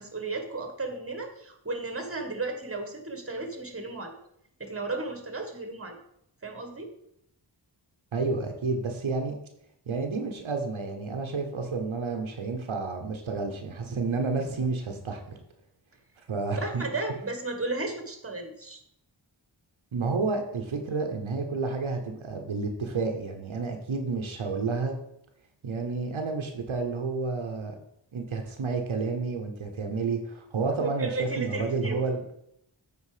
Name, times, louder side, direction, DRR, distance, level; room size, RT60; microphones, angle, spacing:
voice 1, 0.0-4.2 4.6-6.0 6.4-6.9 16.6-18.8 30.7-32.1, right 3 dB, 30° right, 5 dB, 1.6 m, -34 dB
voice 2, 8.1-9.3 9.9-15.4 16.3-16.8 19.9-25.0 25.6-27.7 28.1-32.2, right 4 dB, 85° right, 4 dB, 1.1 m, -30 dB
8.4 x 4.4 x 5.0 m, 0.76 s
cardioid pair, 45°, 46 cm